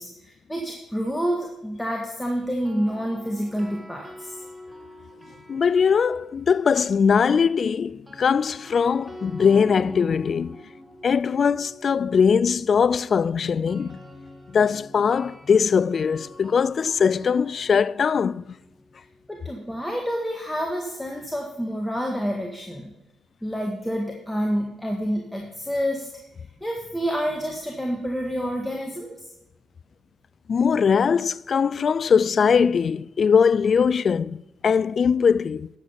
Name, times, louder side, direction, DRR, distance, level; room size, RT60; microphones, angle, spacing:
voice 1, 0.0-4.4 19.3-22.9 23.4-26.1 26.6-29.2, equal, 10° left, 1.8 m, -28 dB
sound 1, 2.4-6.6 7.8-19.7, left 1 dB, 15° right, 2.3 m, -45 dB
voice 2, 5.5-10.6 11.0-14.0 14.5-18.5 30.5-35.7, left 6 dB, 50° left, 0.3 m, -21 dB
10.5 x 7.8 x 5.8 m
hypercardioid pair, 55°, 0 cm